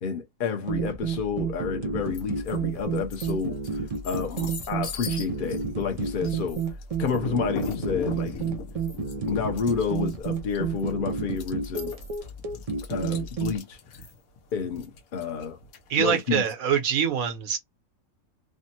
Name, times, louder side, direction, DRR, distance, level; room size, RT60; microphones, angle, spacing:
voice 1, 0.0-6.6 7.0-8.3 9.3-11.9 12.9-13.8 14.5-15.6 16.0-16.4, left 6 dB, 45° left, 0.8 m, -30 dB
sound 1, 0.7-13.6, right 5 dB, 60° right, 0.3 m, -31 dB
sound 2, 2.1-2.6 3.0-16.2, left 6 dB, 85° left, 1.3 m, -39 dB
voice 2, 15.9-17.6, right 8 dB, 80° right, 1.3 m, -24 dB
3.3 x 2.0 x 2.7 m
omnidirectional pair, 1.5 m